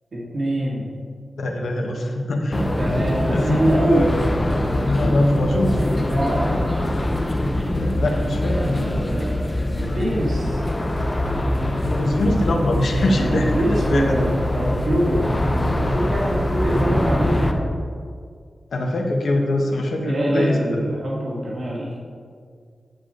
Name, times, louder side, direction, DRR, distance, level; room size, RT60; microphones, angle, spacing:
voice 1, 0.1-0.9 2.8-4.1 5.6-6.6 8.7-9.4 9.9-10.6 13.0-17.7 20.1-22.0, right 1 dB, 55° right, -5 dB, 1.9 m, -24 dB
voice 2, 1.4-2.7 3.3-3.4 3.8-4.2 4.8-5.9 7.7-8.8 11.7-14.1 18.7-20.8, left 1 dB, 85° left, 1 dB, 1.2 m, -23 dB
sound 1, 2.5-17.5, left 1 dB, 15° left, 0.6 m, -23 dB
10.0 x 6.9 x 3.8 m, 2.1 s
wide cardioid pair, 155°, 0 cm